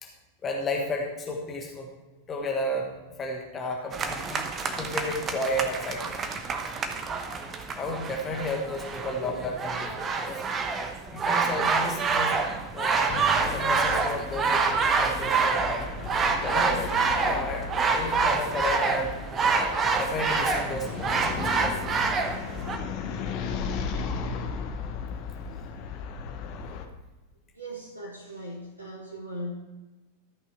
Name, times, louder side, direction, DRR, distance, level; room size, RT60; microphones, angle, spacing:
voice 1, 0.4-1.9 2.3-2.9 3.2-6.2 7.8-10.8 11.1-13.1 13.5-15.9 16.4-19.2 19.5-21.4 26.7-26.8, left 1 dB, 25° left, 1 dB, 1.4 m, -33 dB
sound 1, 3.9-22.8, right 4 dB, 25° right, 1.0 m, -27 dB
sound 2, 13.1-26.9, left 5 dB, 40° left, 0.9 m, -36 dB
voice 2, 27.5-29.5, equal, 80° right, -1 dB, 1.4 m, -39 dB
13.0 x 5.9 x 4.7 m, 1.1 s
figure-of-eight pair, 90°, 0 cm